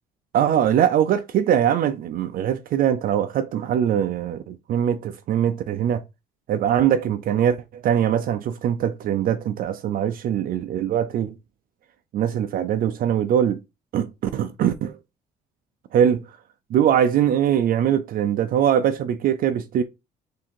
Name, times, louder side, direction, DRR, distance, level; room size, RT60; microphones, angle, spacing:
voice 1, 0.3-6.0 6.5-11.4 12.1-13.6 13.9-15.0 15.9-16.4 16.7-19.8, right 9 dB, 55° right, 0.5 m, -22 dB
3.6 x 2.7 x 4.4 m
cardioid pair, 110°, 17 cm